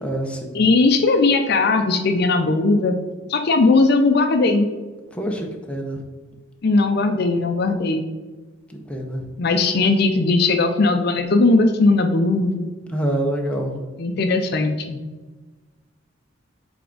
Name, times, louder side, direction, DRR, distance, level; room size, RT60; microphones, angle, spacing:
voice 1, 0.0-0.6 5.1-6.0 8.9-9.3 12.9-13.8, right 1 dB, 5° left, 1 dB, 0.7 m, -26 dB
voice 2, 0.5-2.9 3.3-4.7 6.6-8.0 9.4-12.7 14.0-15.0, left 3 dB, 50° left, 6 dB, 0.5 m, -18 dB
8.2 x 3.4 x 3.9 m, 1.3 s
head